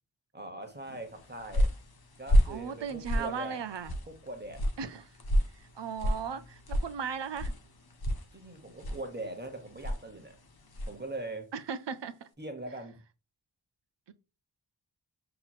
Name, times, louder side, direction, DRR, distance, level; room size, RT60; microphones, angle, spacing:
voice 1, 0.3-1.7 2.2-3.6 4.1-4.6 6.0-6.4 8.3-10.4 10.9-11.5 12.4-13.0, right 2 dB, 25° right, 1.2 m, -41 dB
sound 1, 1.0-11.1, equal, 55° left, 0.8 m, -32 dB
voice 2, 2.5-3.9 4.8-5.1 5.6-7.5 11.5-12.3 14.1-14.2, right 7 dB, 70° right, 0.6 m, -37 dB
5.8 x 2.9 x 2.4 m
wide cardioid pair, 40°, 44 cm